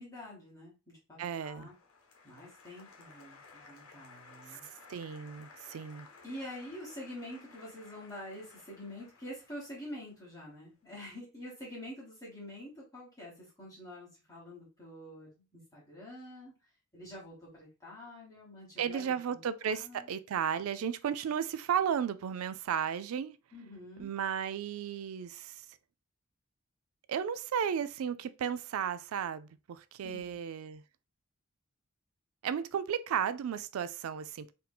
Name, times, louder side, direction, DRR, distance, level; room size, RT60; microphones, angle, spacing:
voice 1, 0.0-1.7 2.2-4.7 6.2-16.5 16.9-19.4 19.7-20.1 23.5-24.1 30.0-30.4, left 1 dB, 15° left, 1.2 m, -47 dB
voice 2, 1.2-1.7 4.9-6.1 18.8-23.4 24.0-25.6 27.1-30.8 32.4-34.5, right 8 dB, 85° right, 0.3 m, -34 dB
Applause, 1.6-10.7, left 4 dB, 90° left, 0.8 m, -56 dB
4.2 x 2.7 x 2.2 m
head